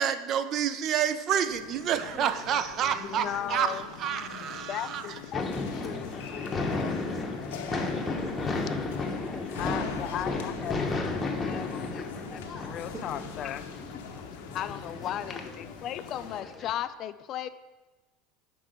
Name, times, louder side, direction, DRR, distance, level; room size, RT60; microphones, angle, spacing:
voice 1, 0.0-5.0, right 8 dB, 45° right, 11 dB, 0.5 m, -29 dB
sound 1, 1.5-16.4, left 7 dB, 90° left, 0.6 m, -43 dB
voice 2, 1.9-3.5 5.8-6.2 6.7-7.3 8.0-8.7 9.3-10.9 12.9-13.3 15.0-15.5, right 1 dB, 25° right, -2 dB, 1.0 m, -46 dB
voice 3, 3.0-3.9 4.6-7.0 9.5-13.6 14.5-17.5, left 11 dB, 45° left, 12 dB, 0.3 m, -37 dB
sound 2, 5.3-16.7, left 3 dB, 15° left, 0.8 m, -34 dB
5.8 x 4.6 x 5.1 m, 1.1 s
supercardioid pair, 115°, 0 cm